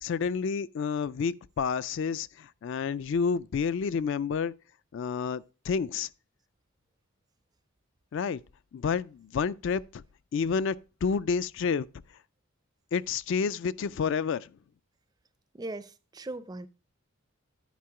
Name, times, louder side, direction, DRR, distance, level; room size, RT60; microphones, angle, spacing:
voice 1, 0.0-4.5 4.9-6.1 8.1-8.4 8.7-10.0 10.3-10.8 11.0-11.9 12.9-14.5, left 6 dB, 55° left, 0.3 m, -29 dB
voice 2, 15.5-16.7, right 2 dB, 20° right, 0.4 m, -39 dB
10.5 x 4.3 x 4.8 m
head